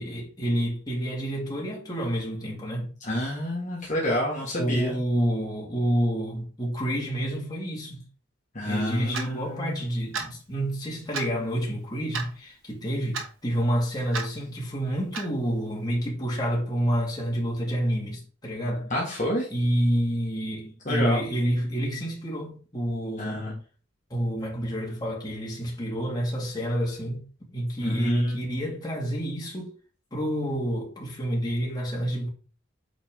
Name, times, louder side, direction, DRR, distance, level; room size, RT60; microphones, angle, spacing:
voice 1, 0.0-2.9 4.6-8.0 8.6-18.9 19.5-23.5 24.1-27.2 27.5-29.7 30.1-32.3, equal, 20° left, 2.2 m, -28 dB
voice 2, 3.0-5.0 8.5-9.8 18.9-19.5 20.8-21.3 23.2-23.5 27.8-28.5, left 1 dB, 40° left, 1.7 m, -28 dB
Clock, 9.1-9.3 10.1-10.3 11.1-11.3 12.1-12.3 13.1-13.3 14.1-14.3 15.1-15.3, right 5 dB, 80° right, 1.3 m, -32 dB
8.2 x 4.3 x 3.7 m
head